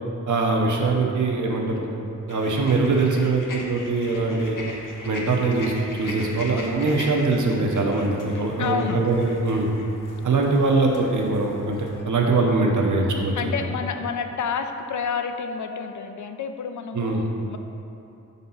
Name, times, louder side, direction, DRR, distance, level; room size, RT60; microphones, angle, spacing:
voice 1, 0.3-1.9 2.3-4.6 5.1-9.7 10.2-13.5 16.9-17.2, right 3 dB, 70° right, 0 dB, 0.8 m, -22 dB
sound 1, 2.3-12.0, left 2 dB, 85° left, 0.9 m, -39 dB
voice 2, 8.6-9.0 13.3-17.6, left 6 dB, 70° left, 7 dB, 0.5 m, -29 dB
5.2 x 4.1 x 5.5 m, 2.9 s
wide cardioid pair, 115°, 31 cm